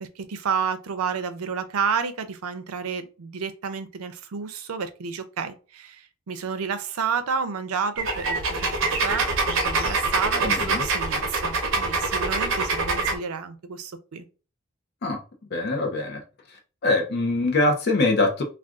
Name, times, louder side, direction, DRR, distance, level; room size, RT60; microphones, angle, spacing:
voice 1, 0.0-14.2, right 6 dB, 90° right, 0.5 m, -30 dB
sound 1, 8.0-13.2, right 3 dB, 60° right, 0.7 m, -25 dB
voice 2, 10.4-10.9 15.0-15.2 15.5-16.2 16.5-18.4, left 2 dB, 50° left, 0.5 m, -23 dB
2.4 x 2.2 x 3.6 m
head